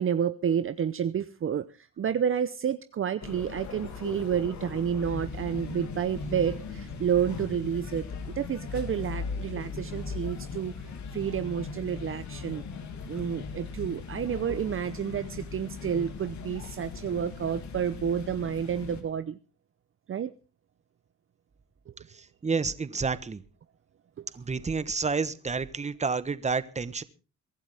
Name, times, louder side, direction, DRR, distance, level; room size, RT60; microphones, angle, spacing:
voice 1, 0.0-10.7 11.1-12.6 13.1-19.4 20.1-20.3 24.2-24.3, right 8 dB, 45° right, 12 dB, 0.8 m, -30 dB
sound 1, 3.2-19.0, left 5 dB, 70° left, 2.7 m, -38 dB
voice 2, 22.4-23.4 24.4-27.0, right 4 dB, 20° right, 14 dB, 1.2 m, -29 dB
23.0 x 12.0 x 3.5 m, 0.33 s
cardioid pair, 90°, 30 cm